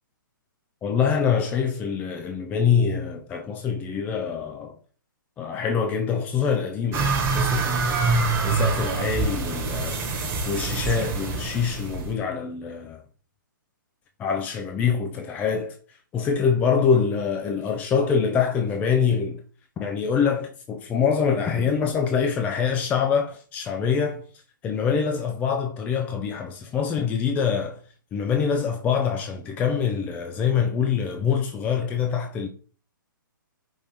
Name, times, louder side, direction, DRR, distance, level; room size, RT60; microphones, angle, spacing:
voice 1, 0.8-4.8 5.4-8.0 8.4-13.0 14.2-15.8 16.1-19.4 19.8-24.2 24.6-27.8 28.1-32.5, left 6 dB, 15° left, 0.4 m, -25 dB
sound 1, 6.9-12.1, right 4 dB, 20° right, 1.3 m, -25 dB
5.3 x 2.8 x 3.5 m
hypercardioid pair, 140°, 11 cm